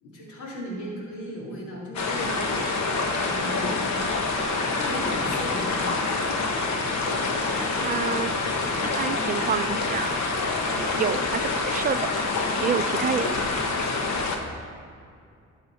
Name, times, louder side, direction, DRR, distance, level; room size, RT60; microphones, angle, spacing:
voice 1, 0.0-2.5 3.1-3.9 4.7-5.8, equal, 85° left, -3 dB, 2.7 m, -36 dB
sound 1, 1.9-14.4, left 3 dB, 65° left, 1.2 m, -26 dB
voice 2, 7.8-8.3 9.0-10.2 10.7-12.2 12.6-13.3, right 8 dB, 30° right, 13 dB, 0.4 m, -28 dB
12.0 x 6.5 x 4.5 m, 2.3 s
cardioid pair, 90°, 30 cm